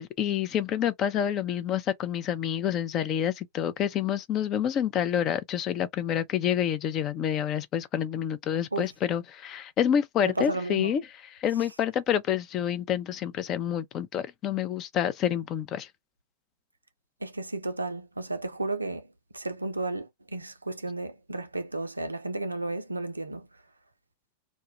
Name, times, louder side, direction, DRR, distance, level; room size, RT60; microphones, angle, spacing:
voice 1, 0.0-11.0 11.3-15.9, left 9 dB, 35° left, 0.4 m, -28 dB
voice 2, 10.2-10.9 17.2-19.1 19.3-23.5, right 2 dB, 80° right, 0.4 m, -33 dB
2.1 x 2.1 x 3.0 m
figure-of-eight pair, 90°, 0 cm